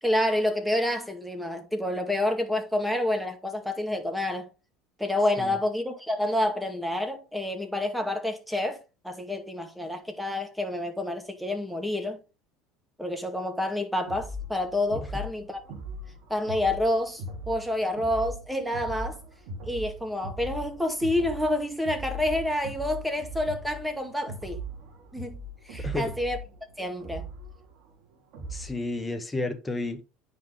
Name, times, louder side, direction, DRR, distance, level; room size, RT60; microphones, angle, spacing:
voice 1, 0.0-4.5 5.0-12.2 13.0-15.6 16.3-19.2 19.7-24.6 25.1-25.4 25.7-26.4 26.8-27.3, left 1 dB, ahead, 2.1 m, -28 dB
sound 1, 14.1-28.8, right 1 dB, 65° right, 2.8 m, -39 dB
voice 2, 25.8-26.1 28.5-30.0, left 2 dB, 15° left, 1.6 m, -32 dB
9.4 x 5.3 x 3.9 m
hypercardioid pair, 80°, 0 cm